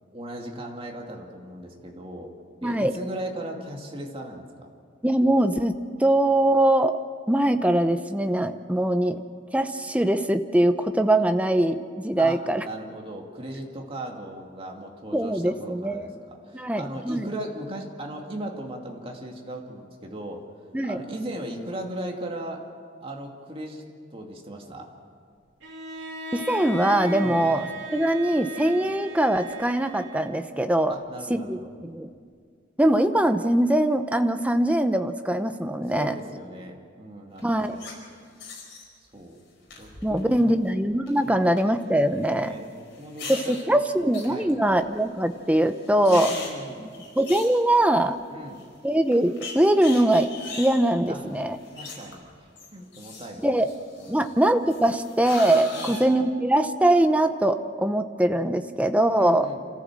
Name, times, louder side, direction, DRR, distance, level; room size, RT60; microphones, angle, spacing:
voice 1, 0.1-2.3 2.6-4.7 12.2-20.4 20.8-22.6 23.0-24.9 27.2-27.5 28.8-28.9 30.9-31.7 35.9-37.9 39.1-39.4 39.8-40.5 41.2-41.4 42.3-43.8 44.3-44.5 46.0-46.9 48.3-48.6 51.1-51.2 51.7-53.6 54.0-54.4 55.7-56.0 59.2-59.6, right 1 dB, 30° right, 1 dB, 2.4 m, -37 dB
voice 2, 2.6-3.0 5.0-5.7 6.0-7.0 7.3-9.2 9.5-12.6 15.1-16.1 16.5-17.3 20.7-21.0 26.3-30.9 31.3-32.1 32.8-36.1 37.4-37.8 40.0-42.6 43.3-46.3 47.2-48.2 48.8-50.3 50.6-51.6 53.4-53.7 54.1-59.5, right 1 dB, 5° right, 8 dB, 0.8 m, -22 dB
Bowed string instrument, 25.6-30.6, right 1 dB, 60° right, 3.0 m, -37 dB
sound 1, 37.4-37.9 38.4-38.8 39.7-40.4 40.6-41.1 41.6-41.7 42.9-43.6 44.1-45.0 45.3-45.4 45.7-48.2 48.6-48.7 49.1-52.3 52.6-54.3 54.7-56.0, left 3 dB, 60° left, 5.3 m, -39 dB
27.5 x 15.0 x 7.5 m, 2.1 s
head